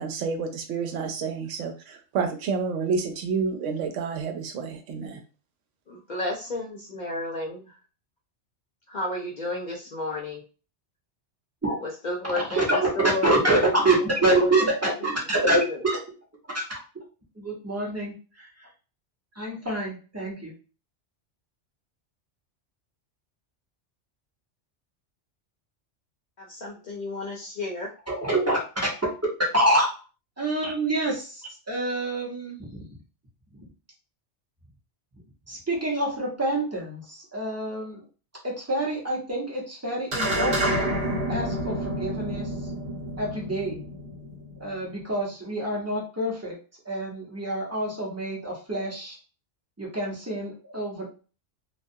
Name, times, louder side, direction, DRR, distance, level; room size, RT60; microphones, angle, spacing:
voice 1, 0.0-5.2, right 5 dB, 90° right, 5 dB, 0.9 m, -29 dB
voice 2, 5.9-7.7 8.9-10.4 11.8-13.3 13.7-13.8 14.3-14.5 15.6-15.8 26.5-27.9, left 2 dB, 55° left, -2 dB, 0.5 m, -32 dB
voice 3, 12.3-16.0 16.5-16.6 17.4-18.5 19.4-20.5 28.1-28.9 29.5-29.9 30.4-32.8 35.5-38.0 38.4-40.9 41.3-42.5 43.2-43.8 44.6-46.6 46.8-49.2 49.8-51.1, right 1 dB, 15° right, -3 dB, 0.8 m, -26 dB
sound 1, 40.1-44.7, right 1 dB, 60° right, 1.3 m, -29 dB
2.3 x 2.3 x 2.6 m, 0.35 s
omnidirectional pair, 1.2 m